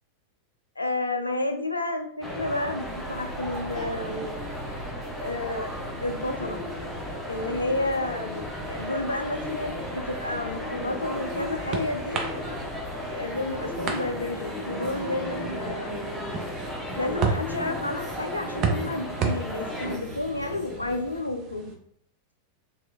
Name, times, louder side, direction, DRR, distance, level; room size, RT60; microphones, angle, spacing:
voice 1, 0.8-4.3 5.2-5.7 6.0-6.6 7.3-12.2 13.1-16.1 16.9-21.8, left 2 dB, 80° left, 6 dB, 0.3 m, -31 dB
sound 1, 2.2-20.0, left 1 dB, ahead, 0.7 m, -35 dB
sound 2, 2.8-21.2, equal, 15° right, 1.1 m, -41 dB
sound 3, 11.0-21.8, right 5 dB, 35° right, 0.5 m, -34 dB
2.8 x 2.4 x 2.2 m, 0.64 s
figure-of-eight pair, 90°, 0 cm